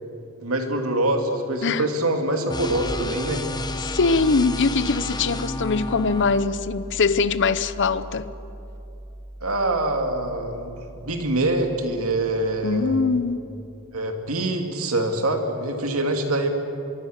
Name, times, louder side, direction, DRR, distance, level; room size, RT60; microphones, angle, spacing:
voice 1, 0.4-3.4 9.4-13.0 13.9-16.5, right 1 dB, 75° right, 2.6 m, -25 dB
sound 1, 2.5-13.8, right 1 dB, 35° left, 5.2 m, -39 dB
sound 2, 2.5-6.5, left 2 dB, 20° left, 1.0 m, -32 dB
voice 2, 3.8-8.3 12.6-13.4, left 4 dB, 55° left, 0.8 m, -22 dB
24.0 x 23.5 x 6.6 m
head